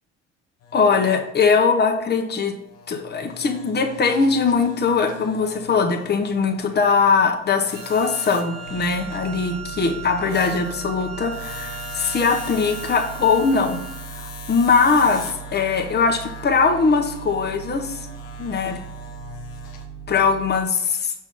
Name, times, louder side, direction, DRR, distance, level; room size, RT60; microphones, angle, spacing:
sound 1, 0.6-19.9, left 5 dB, 80° left, 1.3 m, -41 dB
voice 1, 0.7-2.5 2.9-18.1 18.4-18.8 20.1-21.1, left 5 dB, 25° left, 3 dB, 1.0 m, -21 dB
Wind instrument woodwind instrument, 7.7-14.1, right 10 dB, 40° right, 0.8 m, -38 dB
sound 2, 8.6-20.6, right 8 dB, 70° right, 0.9 m, -39 dB
6.0 x 5.3 x 3.6 m, 0.83 s
hypercardioid pair, 60°, 37 cm